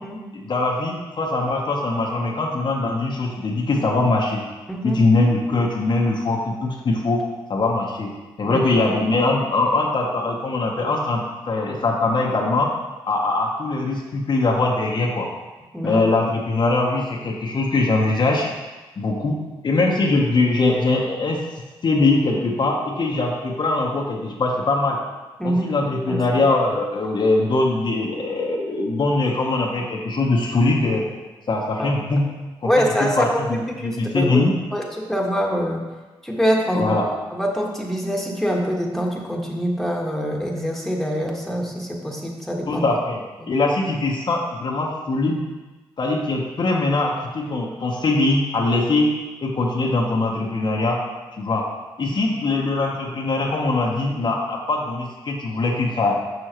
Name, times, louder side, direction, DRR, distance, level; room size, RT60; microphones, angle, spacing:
voice 1, 0.3-4.4 4.8-7.2 7.5-12.7 13.1-15.3 15.8-18.5 19.0-19.4 19.6-21.4 21.8-25.0 25.4-31.0 31.5-32.3 32.6-32.7 33.0-34.5 36.7-37.1 42.7-45.4 46.0-49.1 49.4-51.0 51.4-51.7 52.0-56.2, left 2 dB, 50° left, -1 dB, 1.0 m, -22 dB
voice 2, 4.7-5.0 8.4-8.6 15.7-16.0 25.4-25.7 26.1-26.4 31.8-31.9 32.6-33.2 33.5-34.4 34.7-34.8 35.1-35.8 36.2-36.9 37.3-42.8 52.0-52.1, equal, ahead, -2 dB, 1.5 m, -24 dB
6.5 x 6.1 x 3.0 m, 1.2 s
supercardioid pair, 55°, 10 cm